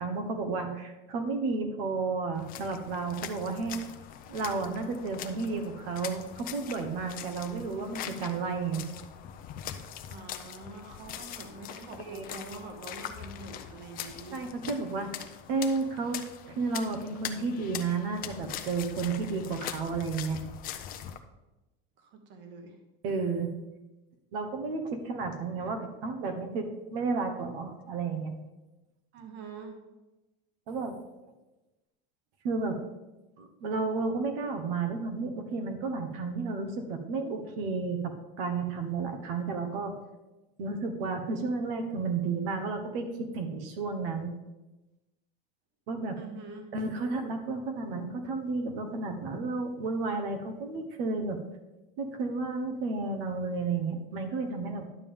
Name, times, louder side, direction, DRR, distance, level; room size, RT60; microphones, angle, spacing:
voice 1, 0.0-3.8 4.3-8.8 12.1-12.2 14.3-16.2 16.5-20.4 23.0-23.5 24.3-28.4 30.7-31.0 32.4-32.8 33.4-40.0 40.6-43.1 43.3-44.3 45.9-46.2 46.7-51.4 52.0-54.9, right 4 dB, 75° right, 5 dB, 1.3 m, -32 dB
sound 1, 2.3-21.2, left 10 dB, 30° left, 0.5 m, -42 dB
voice 2, 10.1-14.5 22.0-22.8 29.1-29.8 46.2-46.7, right 3 dB, 40° right, 4 dB, 1.2 m, -45 dB
11.0 x 7.0 x 3.6 m, 1.0 s
cardioid pair, 165°, 29 cm